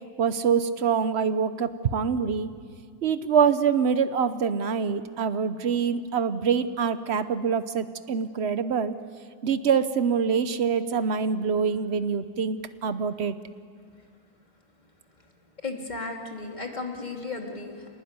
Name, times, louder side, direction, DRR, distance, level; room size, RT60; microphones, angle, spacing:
voice 1, 0.2-2.5 3.0-8.9 9.4-13.4, right 6 dB, 70° right, 11 dB, 0.6 m, -25 dB
voice 2, 15.6-18.0, left 3 dB, 20° left, 1 dB, 2.7 m, -35 dB
27.5 x 19.5 x 9.6 m, 2.2 s
omnidirectional pair, 2.3 m